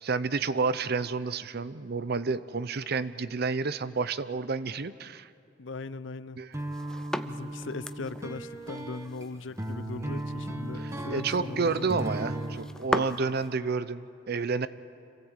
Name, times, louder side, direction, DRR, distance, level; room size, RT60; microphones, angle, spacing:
voice 1, 0.0-5.3 6.4-6.5 10.1-10.2 10.8-14.7, right 4 dB, 55° right, 14 dB, 0.7 m, -30 dB
voice 2, 5.6-6.4 7.2-12.0, left 3 dB, 85° left, 14 dB, 0.7 m, -39 dB
sound 1, 6.5-12.7, right 1 dB, 15° right, 1.1 m, -36 dB
sound 2, 6.6-13.6, left 1 dB, 5° left, 0.6 m, -38 dB
26.5 x 16.5 x 8.1 m, 2.6 s
head